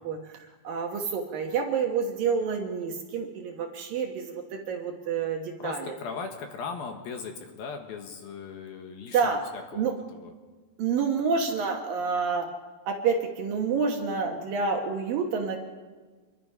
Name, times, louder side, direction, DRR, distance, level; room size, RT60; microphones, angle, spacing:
voice 1, 0.0-6.0 9.1-9.5 9.7-9.9 10.8-12.5 12.9-15.6, right 5 dB, 65° right, 2 dB, 2.6 m, -28 dB
voice 2, 5.6-9.4 9.7-10.3, left 5 dB, 65° left, 4 dB, 2.9 m, -38 dB
26.5 x 22.5 x 5.6 m, 1.4 s
omnidirectional pair, 5.2 m